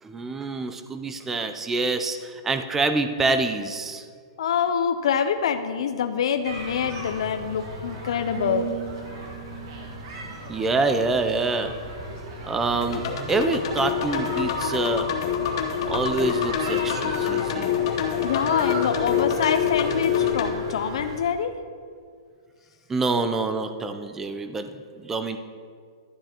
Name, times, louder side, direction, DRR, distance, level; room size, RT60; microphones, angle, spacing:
voice 1, 0.0-4.0 10.5-11.7 12.5-13.0 13.3-15.1 15.9-17.7 22.9-25.4, right 3 dB, 10° right, 8 dB, 0.4 m, -26 dB
voice 2, 4.4-8.8 18.2-21.6, left 7 dB, 65° left, 8 dB, 0.5 m, -25 dB
sound 1, 6.4-21.2, right 1 dB, 50° right, 1.5 m, -37 dB
sound 2, 8.4-12.3 12.7-13.0, right 7 dB, 30° right, 1.6 m, -39 dB
sound 3, 12.8-20.5, left 8 dB, 50° left, 1.0 m, -26 dB
12.5 x 9.8 x 2.9 m, 2.1 s
hypercardioid pair, 160°, 3 cm